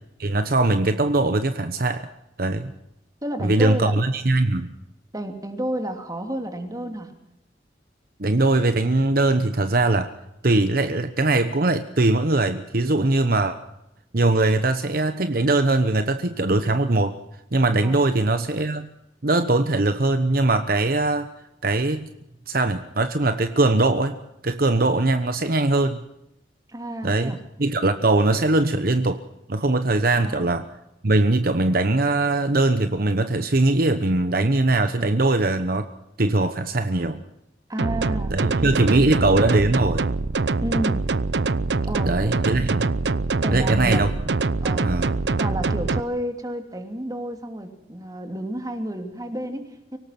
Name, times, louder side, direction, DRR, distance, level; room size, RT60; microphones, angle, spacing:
voice 1, 0.2-2.1 2.4-2.7 3.4-4.7 8.2-10.1 10.4-13.6 14.1-17.1 17.5-18.9 19.2-21.3 21.6-22.1 22.5-24.2 24.4-26.0 27.0-29.2 29.5-30.7 31.0-35.9 36.2-37.2 38.3-40.0 42.0-43.0 43.5-44.1 44.8-45.1, right 2 dB, 55° right, 9 dB, 1.0 m, -21 dB
voice 2, 3.2-3.9 5.1-7.1 17.8-18.0 26.7-27.4 30.1-30.6 37.7-39.1 40.6-41.1 41.9-42.3 43.4-44.1 44.6-45.0 45.4-50.0, equal, 20° right, 6 dB, 2.8 m, -31 dB
sound 1, 37.8-46.0, right 3 dB, 75° right, 0.7 m, -24 dB
24.5 x 18.0 x 6.0 m, 0.86 s
head